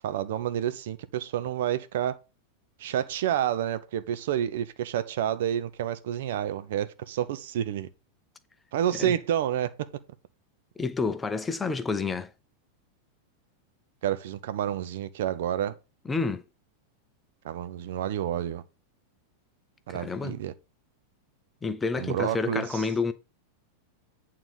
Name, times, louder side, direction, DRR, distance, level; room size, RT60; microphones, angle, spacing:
voice 1, 0.0-2.2 2.8-7.9 8.7-9.9 14.0-15.7 17.4-18.6 19.9-20.5 22.0-22.8, right 10 dB, 55° right, 0.7 m, -29 dB
voice 2, 10.8-12.3 16.1-16.4 19.9-20.4 21.6-23.1, left 4 dB, 15° left, 0.7 m, -29 dB
8.9 x 3.8 x 6.4 m
figure-of-eight pair, 90°, 0 cm